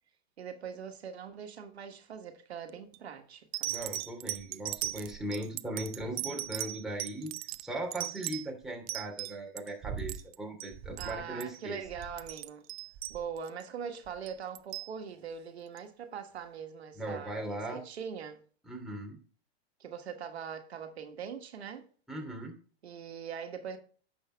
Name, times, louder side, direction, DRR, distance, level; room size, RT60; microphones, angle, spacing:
voice 1, 0.4-3.7 11.0-12.7 13.1-18.4 19.8-21.8 22.8-23.8, right 7 dB, 90° right, 1.4 m, -42 dB
sound 1, 2.7-3.0 3.5-9.7 10.0-10.7 11.0-11.1 11.4-11.6 12.0-13.6 14.3-14.9 15.8-15.9, right 16 dB, 70° right, 0.6 m, -38 dB
voice 2, 3.7-7.3 7.6-11.8 16.9-17.8 18.6-19.2 22.1-22.6, right 1 dB, ahead, 2.8 m, -38 dB
sound 2, 9.8-10.3 10.7-11.3 11.8-12.4 12.9-13.4 14.0-14.4 15.1-15.5 16.4-16.5, right 6 dB, 40° right, 2.5 m, -44 dB
9.9 x 6.5 x 3.3 m
hypercardioid pair, 110°, 31 cm